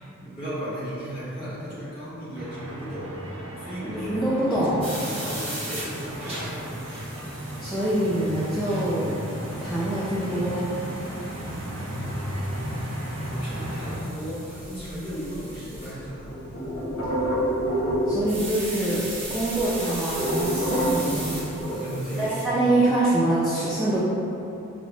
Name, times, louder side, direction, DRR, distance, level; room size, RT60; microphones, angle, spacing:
voice 1, 0.1-3.3 3.6-4.1 4.4-6.7 13.4-16.3 21.7-22.8, equal, 25° left, -12 dB, 1.5 m, -35 dB
sound 1, 2.3-14.0, equal, 65° right, 0.6 m, -35 dB
voice 2, 4.1-4.9 7.6-9.2 9.6-10.7 18.1-19.0 19.3-21.4 22.2-24.0, right 1 dB, ahead, -11 dB, 0.3 m, -25 dB
sound 2, 4.8-15.9 18.3-22.4, right 1 dB, 30° right, 0.8 m, -39 dB
sound 3, 14.6-15.8 16.1-18.7 18.9-19.0 19.2-21.7, right 1 dB, 50° left, 0.7 m, -27 dB
4.7 x 2.0 x 3.1 m, 2.8 s
head